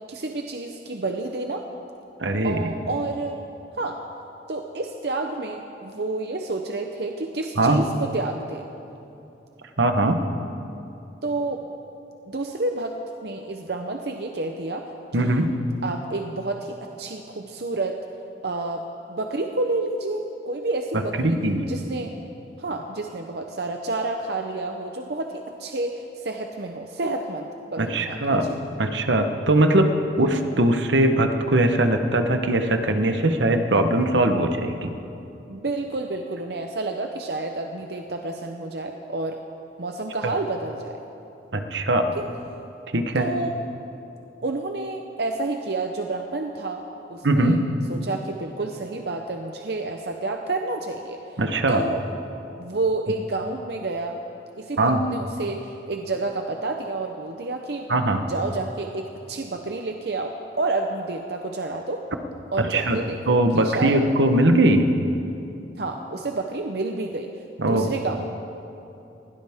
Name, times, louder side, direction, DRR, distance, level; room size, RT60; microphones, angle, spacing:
voice 1, 0.1-1.6 2.4-3.4 3.8-4.0 4.5-8.7 11.2-11.6 12.3-12.9 13.2-14.8 15.2-15.4 15.8-18.0 18.4-18.8 19.1-21.4 21.7-22.1 22.6-28.6 35.5-39.4 39.8-41.0 43.2-43.5 44.4-46.8 47.1-47.6 47.9-51.2 51.7-52.0 52.6-54.2 54.6-57.9 58.2-62.0 62.5-64.0 65.8-67.3 67.6-68.2, right 2 dB, 60° right, 3 dB, 0.8 m, -29 dB
voice 2, 2.2-2.7 7.6-7.8 9.8-10.2 15.1-15.5 20.9-21.7 27.8-28.5 28.8-34.9 41.5-42.2 42.9-43.3 47.2-47.6 51.4-51.8 54.8-55.0 57.9-58.2 62.6-63.0 63.3-64.9 67.6-67.9, right 1 dB, 75° right, 6 dB, 1.1 m, -21 dB
20.5 x 16.5 x 3.6 m, 2.8 s
head